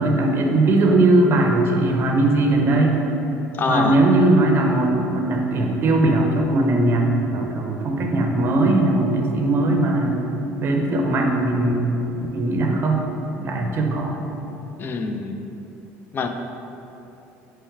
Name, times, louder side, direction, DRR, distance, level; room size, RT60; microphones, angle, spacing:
voice 1, 0.0-3.0 3.7-10.2 10.6-11.8 12.3-13.1 13.4-14.2, right 2 dB, 40° right, 1 dB, 0.6 m, -19 dB
voice 2, 3.5-4.0 14.8-15.4 16.1-16.3, left 4 dB, 35° left, 6 dB, 0.3 m, -24 dB
4.4 x 3.2 x 3.6 m, 2.9 s
supercardioid pair, 105°, 6 cm